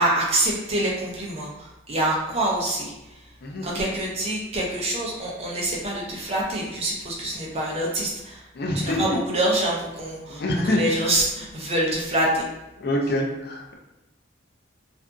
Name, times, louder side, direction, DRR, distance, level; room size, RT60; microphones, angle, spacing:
voice 1, 0.0-3.2 3.6-8.4 8.7-12.4, right 1 dB, 30° right, -3 dB, 0.5 m, -26 dB
voice 2, 3.4-3.8 8.5-9.2 10.3-10.8 12.8-13.7, left 1 dB, 50° left, 0 dB, 0.4 m, -26 dB
2.6 x 2.5 x 2.3 m, 0.97 s
head